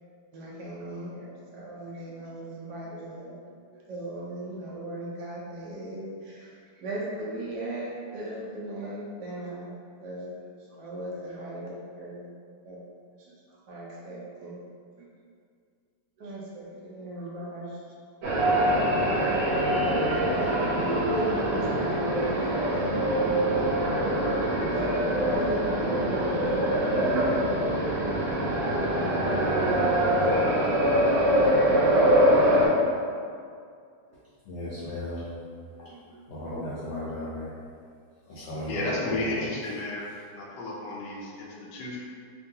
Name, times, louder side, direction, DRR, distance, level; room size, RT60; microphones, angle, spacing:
voice 1, 0.3-3.4 3.7-12.2 12.6-12.8 13.2-14.6 15.0-15.1 16.2-17.9 19.6-19.7 20.1-23.4 24.2-26.7 29.3-29.7 30.1-30.4 31.2-31.6 32.0-32.2 34.1-34.2 35.7-36.2 36.6-36.7, right 1 dB, 85° right, -5 dB, 1.2 m, -39 dB
sound 1, 18.2-32.7, right 1 dB, 60° right, 1.0 m, -24 dB
voice 2, 34.5-35.3 35.8-35.9 36.3-37.5 38.3-39.5, left 1 dB, 65° left, -9 dB, 0.7 m, -36 dB
voice 3, 38.4-42.0, left 2 dB, 85° left, -4 dB, 1.2 m, -33 dB
3.6 x 2.2 x 2.7 m, 2.2 s
omnidirectional pair, 1.8 m